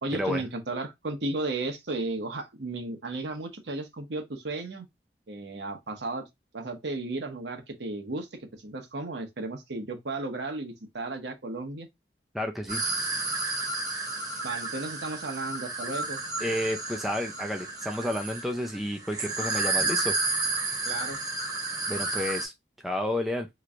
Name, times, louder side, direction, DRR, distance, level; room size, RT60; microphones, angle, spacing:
voice 1, 0.0-4.9 5.3-6.2 6.5-8.3 8.6-11.9 14.4-16.2 20.8-21.2, right 2 dB, 75° right, 0.9 m, -34 dB
voice 2, 12.3-12.8 16.4-20.1 21.9-22.5 22.8-23.5, left 1 dB, ahead, 0.4 m, -31 dB
sound 1, 12.7-22.4, right 3 dB, 20° right, 1.0 m, -31 dB
3.1 x 3.0 x 2.4 m
head